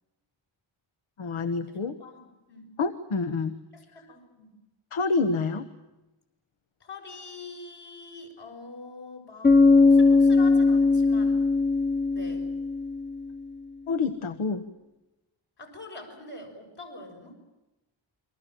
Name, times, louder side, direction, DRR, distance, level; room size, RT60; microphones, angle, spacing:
voice 1, 1.2-2.0 2.8-3.5 4.9-5.7 13.9-14.6, left 4 dB, 85° left, 10 dB, 1.4 m, -27 dB
voice 2, 2.0-2.7 3.7-4.5 6.8-11.4 12.0-12.5 15.6-17.3, left 3 dB, 60° left, 3 dB, 6.5 m, -44 dB
Bass guitar, 9.4-13.3, left 3 dB, 25° left, 1.1 m, -20 dB
28.5 x 23.5 x 7.7 m, 1.0 s
wide cardioid pair, 150°, 47 cm